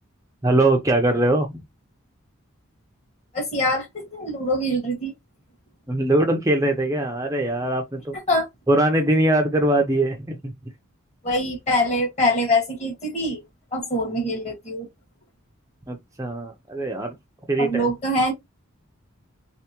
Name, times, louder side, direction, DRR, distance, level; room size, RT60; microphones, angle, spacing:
voice 1, 0.4-1.6 5.9-8.1 8.7-10.5 15.9-17.1 17.5-17.9, right 1 dB, 15° right, 0.5 m, -21 dB
voice 2, 3.3-5.1 8.3-8.5 11.2-13.4 13.7-14.9 17.6-18.3, left 1 dB, 30° left, 1.7 m, -24 dB
3.5 x 3.5 x 2.9 m
head